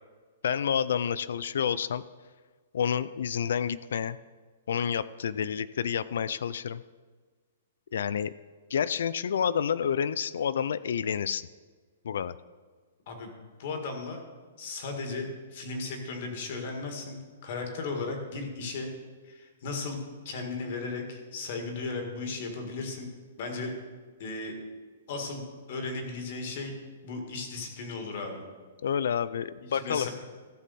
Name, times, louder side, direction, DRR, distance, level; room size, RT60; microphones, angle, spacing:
voice 1, 0.4-2.0 2.7-4.2 4.7-6.8 7.9-8.3 8.7-11.5 12.0-12.3 28.8-30.1, left 8 dB, 60° left, 17 dB, 0.3 m, -29 dB
voice 2, 13.6-14.2 14.6-18.9 19.2-20.0 20.3-23.1 23.4-23.7 24.2-24.5 25.1-25.4 25.7-26.7 27.0-28.4 29.7-30.1, left 3 dB, 40° left, 3 dB, 1.9 m, -36 dB
15.0 x 7.4 x 4.2 m, 1.4 s
hypercardioid pair, 180°, 0 cm